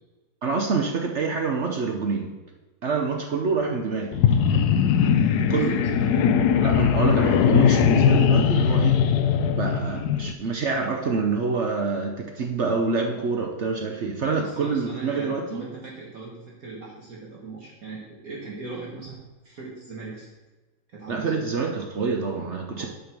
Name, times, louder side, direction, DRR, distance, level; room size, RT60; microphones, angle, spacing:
voice 1, 0.4-2.3 2.8-4.2 5.5-5.8 6.6-9.1 9.6-15.7 21.1-22.9, right 4 dB, 65° right, 2 dB, 0.7 m, -26 dB
sound 1, 4.1-10.3, left 7 dB, 75° left, 0.9 m, -20 dB
voice 2, 5.3-6.0 14.4-19.2 19.4-20.3 20.9-21.4 22.2-22.9, right 3 dB, 45° right, -3 dB, 1.7 m, -39 dB
7.8 x 5.2 x 5.9 m, 1.2 s
omnidirectional pair, 2.2 m